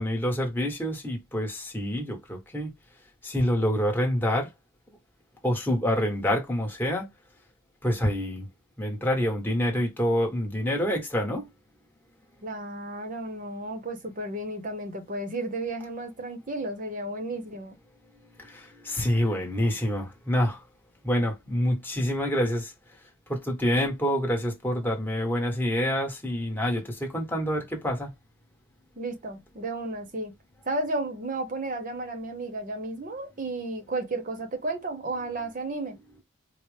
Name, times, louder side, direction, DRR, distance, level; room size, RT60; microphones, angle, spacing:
voice 1, 0.0-2.7 3.2-4.5 5.4-7.1 7.8-8.5 8.8-11.5 18.4-20.6 21.0-22.7 23.3-28.1, equal, 10° left, 1.1 m, -27 dB
voice 2, 12.4-17.8 29.0-30.3 30.6-36.0, right 2 dB, 40° right, 0.8 m, -33 dB
4.4 x 2.0 x 3.2 m
head